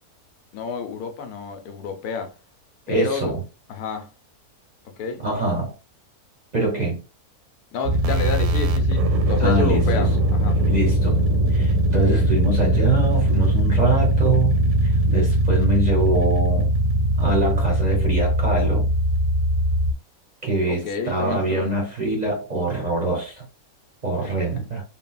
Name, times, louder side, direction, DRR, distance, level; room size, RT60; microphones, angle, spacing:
voice 1, 0.5-2.3 2.9-3.3 3.7-4.1 4.8-5.2 7.7-10.6 20.7-21.8 24.2-24.3, left 5 dB, 90° left, 1.2 m, -30 dB
voice 2, 2.9-3.4 5.2-5.7 6.5-7.0 9.4-10.1 10.7-16.7 17.2-18.9 20.4-23.4 24.0-24.8, right 2 dB, 45° right, 0.6 m, -24 dB
sound 1, 7.8-19.9, right 1 dB, 90° right, 1.1 m, -20 dB
3.6 x 2.0 x 2.2 m
omnidirectional pair, 1.6 m